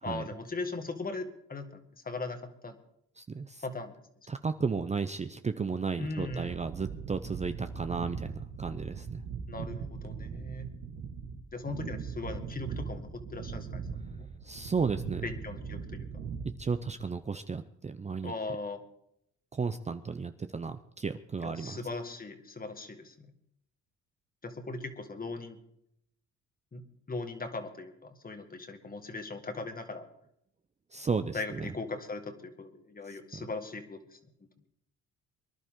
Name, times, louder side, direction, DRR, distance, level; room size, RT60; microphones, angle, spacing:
voice 1, 0.0-2.8 3.6-4.0 6.0-6.5 9.5-10.7 11.5-13.9 14.2-14.3 15.2-16.1 18.2-18.8 21.4-23.3 24.4-25.6 26.7-30.1 31.3-34.2, left 3 dB, 30° left, 7 dB, 2.0 m, -39 dB
voice 2, 3.2-3.6 4.3-8.3 8.6-9.2 14.4-15.2 16.6-18.3 19.5-21.8 30.9-31.7 33.1-33.4, right 5 dB, 25° right, 9 dB, 0.6 m, -34 dB
sound 1, 6.1-17.2, right 6 dB, 80° right, 1.9 m, -40 dB
24.0 x 11.0 x 3.8 m, 0.74 s
cardioid pair, 90°, 30 cm